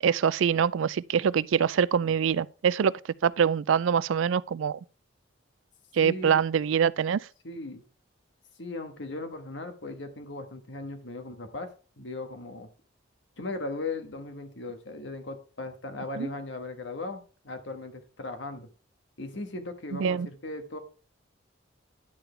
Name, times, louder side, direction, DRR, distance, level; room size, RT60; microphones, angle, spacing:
voice 1, 0.0-2.9 3.2-4.8 5.9-7.2 16.2-16.3 19.9-20.3, right 7 dB, 85° right, 0.3 m, -24 dB
voice 2, 6.0-6.4 7.4-7.8 8.6-11.7 12.0-12.7 13.4-18.7 19.2-20.8, left 2 dB, 70° left, 1.4 m, -38 dB
10.5 x 6.9 x 3.3 m
head